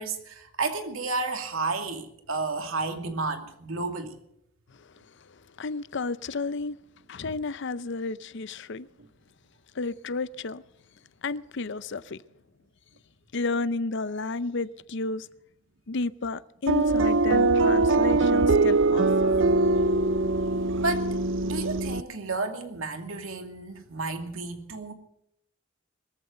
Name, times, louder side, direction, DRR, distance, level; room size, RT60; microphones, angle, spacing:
voice 1, 0.0-4.2 9.0-9.1 20.8-21.1 21.4-24.9, right 3 dB, 85° right, 2.4 m, -32 dB
voice 2, 5.6-6.8 7.1-8.9 9.7-10.6 11.2-12.2 13.3-15.3 15.9-19.3, left 3 dB, 60° left, 0.6 m, -32 dB
sound 1, 16.7-22.0, right 3 dB, 65° right, 0.5 m, -22 dB
23.0 x 14.5 x 3.9 m
head